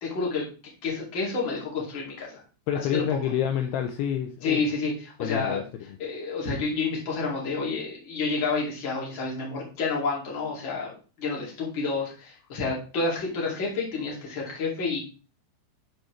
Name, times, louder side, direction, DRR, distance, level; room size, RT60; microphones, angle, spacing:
voice 1, 0.0-0.4 0.8-2.4 2.9-3.2 4.4-5.6 6.0-15.0, left 4 dB, 35° left, -3 dB, 2.2 m, -29 dB
voice 2, 2.7-4.6 5.2-5.6, left 9 dB, 85° left, 6 dB, 2.3 m, -28 dB
11.0 x 4.4 x 3.2 m, 0.36 s
omnidirectional pair, 5.3 m